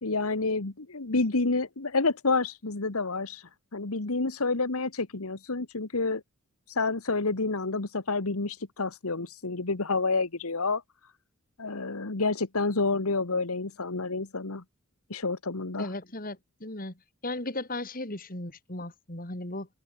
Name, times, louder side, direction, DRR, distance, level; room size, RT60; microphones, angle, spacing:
voice 1, 0.0-6.2 6.7-10.8 11.6-14.6 15.1-15.9, left 3 dB, 75° left, 1.5 m, -29 dB
voice 2, 15.8-16.9 17.2-19.7, left 2 dB, 40° left, 3.4 m, -36 dB
head